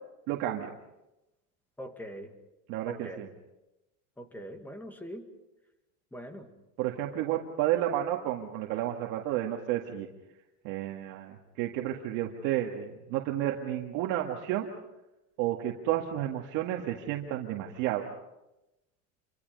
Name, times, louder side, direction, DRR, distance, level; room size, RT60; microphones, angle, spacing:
voice 1, 0.3-0.7 2.7-3.3 6.8-10.1 10.6-14.7 15.4-18.1, right 12 dB, 50° right, 1 dB, 2.0 m, -31 dB
voice 2, 1.8-2.3 2.8-3.3 4.2-5.3 6.1-6.5 7.1-7.2, equal, 5° left, 6 dB, 2.0 m, -42 dB
28.0 x 24.0 x 5.4 m, 0.97 s
supercardioid pair, 155°, 38 cm